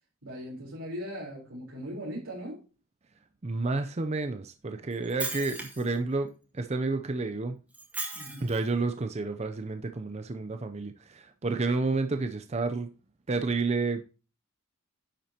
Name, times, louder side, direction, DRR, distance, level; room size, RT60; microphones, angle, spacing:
voice 1, 0.2-2.6 8.1-8.5, equal, 75° right, 3.8 m, -39 dB
voice 2, 3.4-6.3 6.5-7.6 8.4-12.9 13.3-14.0, right 3 dB, 30° right, 0.5 m, -30 dB
Shatter, 4.9-5.9 7.7-8.7, right 2 dB, 5° right, 1.9 m, -37 dB
10.0 x 7.5 x 2.9 m
head